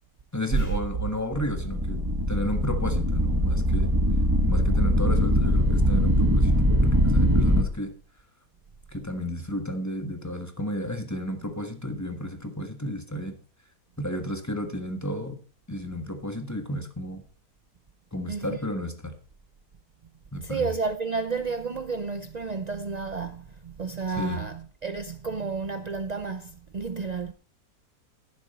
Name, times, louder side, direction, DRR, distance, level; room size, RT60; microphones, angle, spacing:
voice 1, 0.3-2.0 2.3-3.9 4.5-6.5 6.8-7.9 8.9-13.4 14.0-15.4 15.7-17.2 18.1-19.2 20.3-20.7 24.2-24.4, left 1 dB, 10° left, 1.4 m, -32 dB
sound 1, 1.3-7.6, equal, 15° right, 1.3 m, -22 dB
voice 2, 18.3-18.6 20.4-27.3, right 4 dB, 60° right, 0.4 m, -31 dB
11.5 x 10.5 x 4.2 m
omnidirectional pair, 1.7 m